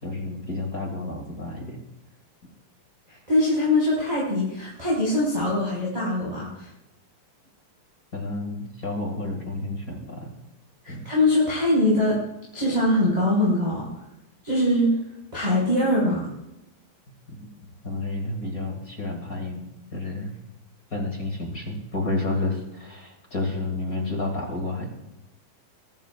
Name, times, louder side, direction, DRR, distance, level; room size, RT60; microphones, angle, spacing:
voice 1, 0.0-1.8 8.1-10.3 10.9-11.0 17.3-17.4 17.8-19.6 19.9-20.3 20.9-24.9, left 2 dB, 30° left, 0 dB, 1.8 m, -30 dB
voice 2, 3.1-6.7 10.8-12.2 12.5-13.9 14.4-15.0 15.3-16.3, left 1 dB, 10° right, -6 dB, 4.9 m, -22 dB
23.0 x 13.0 x 2.5 m, 0.90 s
omnidirectional pair, 5.3 m